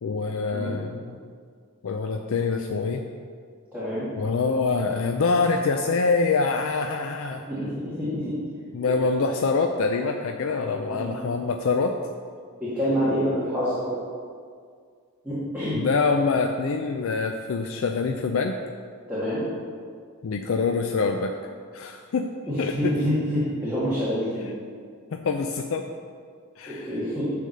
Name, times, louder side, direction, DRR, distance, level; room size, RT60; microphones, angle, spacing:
voice 1, 0.0-1.2 1.8-3.0 4.2-7.4 8.7-12.0 15.7-18.6 20.2-21.3 21.7-22.3 22.6-22.9 25.1-25.9 26.6-26.9, left 4 dB, 60° left, 4 dB, 0.4 m, -25 dB
voice 2, 3.7-4.1 7.5-8.3 10.9-11.1 12.6-13.9 15.2-15.9 19.1-19.5 22.5-24.5 26.7-27.3, equal, 5° right, -12 dB, 2.0 m, -27 dB
9.9 x 3.4 x 6.7 m, 2.1 s
head